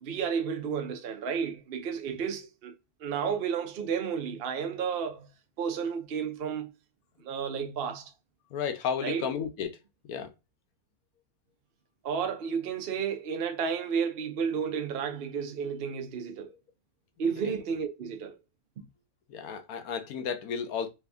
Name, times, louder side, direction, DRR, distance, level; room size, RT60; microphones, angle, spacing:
voice 1, 0.0-2.7 3.0-5.3 5.6-6.7 7.2-8.1 9.0-9.3 12.0-16.5 17.2-18.4 18.8-18.9, right 6 dB, 50° right, 0.7 m, -32 dB
voice 2, 8.5-9.8 10.1-10.3 19.3-20.9, left 7 dB, 80° left, 1.2 m, -33 dB
3.3 x 2.9 x 3.4 m
omnidirectional pair, 1.5 m